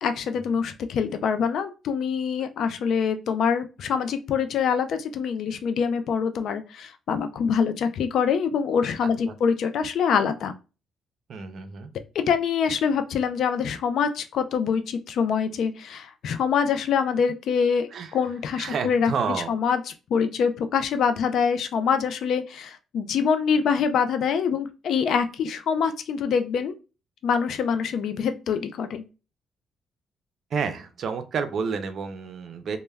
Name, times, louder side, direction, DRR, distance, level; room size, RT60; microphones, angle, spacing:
voice 1, 0.0-10.5 12.1-19.1 19.5-19.8 20.1-26.7 27.2-29.0, left 6 dB, 70° left, 9 dB, 0.4 m, -25 dB
voice 2, 11.3-11.9 17.9-18.1 18.6-19.5 30.5-32.8, right 5 dB, 60° right, 10 dB, 0.4 m, -30 dB
2.1 x 2.1 x 3.3 m, 0.32 s
cardioid pair, 90°, 0 cm